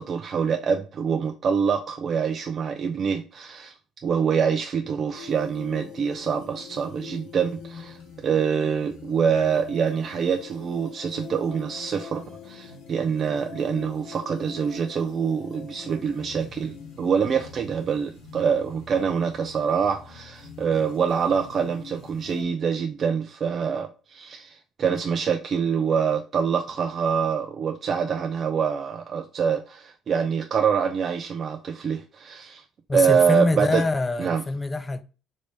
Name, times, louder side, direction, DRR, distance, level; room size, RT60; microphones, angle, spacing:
voice 1, 0.0-3.7 4.0-32.6 32.9-33.8 34.2-34.4, right 6 dB, 50° right, 0.3 m, -25 dB
sound 1, 5.2-22.4, left 6 dB, 70° left, 0.9 m, -44 dB
voice 2, 32.9-35.0, left 2 dB, 25° left, 0.4 m, -25 dB
3.0 x 2.6 x 3.2 m
hypercardioid pair, 65°, 0 cm